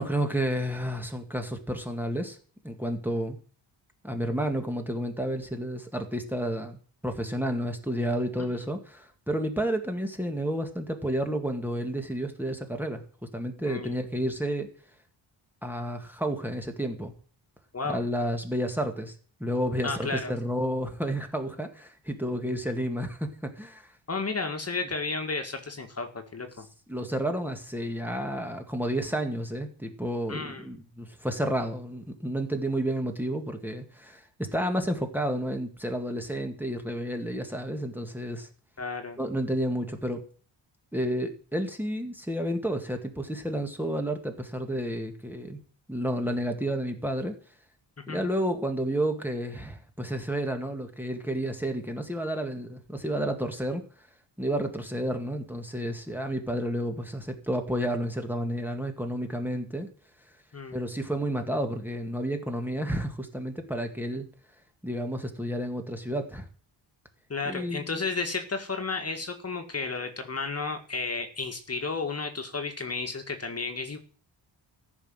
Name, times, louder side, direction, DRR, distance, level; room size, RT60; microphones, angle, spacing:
voice 1, 0.0-2.4 2.6-3.4 4.0-6.8 7.0-13.0 13.3-14.7 15.6-17.1 17.8-19.1 19.4-23.9 26.9-38.5 39.2-40.2 40.9-45.6 45.9-47.4 48.1-53.8 54.4-59.9 60.7-64.3 64.8-66.5 67.5-67.9, equal, 5° right, 4 dB, 2.0 m, -31 dB
voice 2, 13.7-14.0 17.7-18.0 19.8-20.3 24.1-26.7 30.3-30.7 38.8-39.2 48.0-48.2 60.5-60.8 67.3-74.0, left 4 dB, 30° left, 6 dB, 2.0 m, -32 dB
14.5 x 6.3 x 9.1 m, 0.43 s
wide cardioid pair, 130°, 46 cm